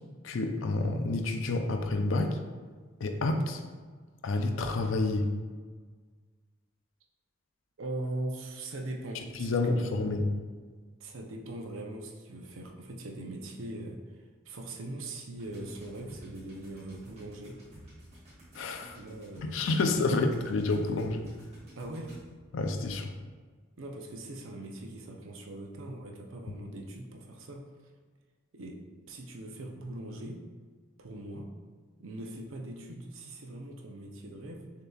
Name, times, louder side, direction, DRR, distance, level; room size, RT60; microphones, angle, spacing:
voice 1, 0.2-2.4 3.0-3.6 4.2-5.3 9.3-10.3 18.5-19.0 19.4-21.3 22.5-23.1, left 2 dB, 75° left, 6 dB, 0.4 m, -29 dB
voice 2, 7.8-10.1 11.0-17.6 19.0-20.3 21.8-22.2 23.8-27.7 28.5-28.8 29.1-30.4 31.0-31.5 32.0-34.7, right 1 dB, 80° right, 2 dB, 0.6 m, -41 dB
sound 1, 15.3-22.6, equal, 30° right, 1.4 m, -52 dB
6.6 x 2.8 x 2.3 m, 1.5 s
head